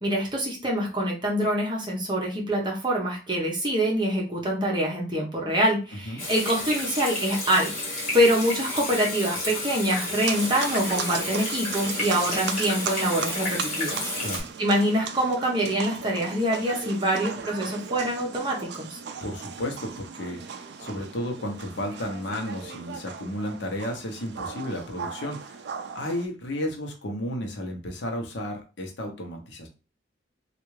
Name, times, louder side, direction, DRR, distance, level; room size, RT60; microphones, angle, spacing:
voice 1, 0.0-7.7 8.1-14.1 14.6-19.0, equal, 25° right, -2 dB, 0.8 m, -25 dB
Water tap faucet / Sink (filling or washing), 6.2-14.4, left 2 dB, 35° left, 1.5 m, -31 dB
sound 1, 10.2-26.3, right 6 dB, 60° right, 0.4 m, -37 dB
voice 2, 14.2-14.5 19.2-25.6 25.9-29.7, left 1 dB, 65° left, 2 dB, 0.8 m, -33 dB
3.3 x 2.4 x 3.1 m, 0.32 s
head